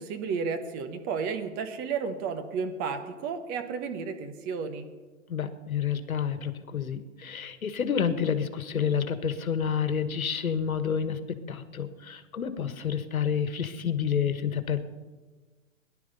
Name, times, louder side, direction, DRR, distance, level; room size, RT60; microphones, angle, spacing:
voice 1, 0.0-4.9, right 5 dB, 20° right, 8 dB, 1.0 m, -32 dB
voice 2, 5.3-14.8, left 7 dB, 90° left, 10 dB, 1.5 m, -29 dB
18.5 x 11.0 x 5.3 m, 1.3 s
hypercardioid pair, 140°, 41 cm